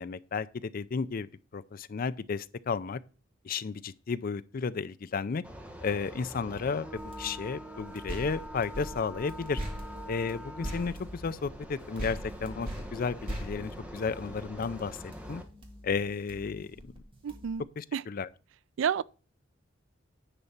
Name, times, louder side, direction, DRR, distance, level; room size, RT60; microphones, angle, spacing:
voice 1, 0.0-3.0 3.4-5.4 5.8-9.6 10.1-15.4 15.8-16.9 17.8-18.3, left 5 dB, 45° left, 0.4 m, -33 dB
sound 1, 5.4-15.4, equal, 5° right, 1.2 m, -45 dB
sound 2, 7.0-17.6, left 1 dB, 25° right, 1.6 m, -50 dB
sound 3, 8.1-11.7 12.0-14.5, equal, 45° right, 2.6 m, -39 dB
voice 2, 17.2-17.6 17.9-18.0 18.8-19.0, right 7 dB, 70° right, 0.3 m, -29 dB
10.0 x 4.1 x 7.1 m
head